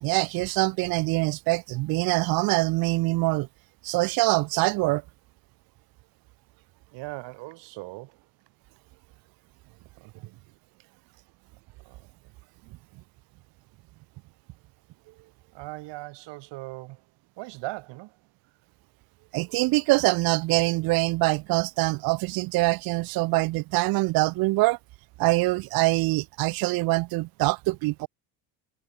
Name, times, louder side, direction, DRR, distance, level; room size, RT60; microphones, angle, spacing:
voice 1, 0.0-3.5 3.8-5.0 19.3-24.8 25.2-28.1, right 22 dB, 55° right, 0.5 m, -24 dB
voice 2, 6.9-8.2 10.0-10.4 11.8-12.1 15.5-17.0 17.4-18.2, right 21 dB, 70° right, 1.5 m, -39 dB
cardioid pair, 125°, 44 cm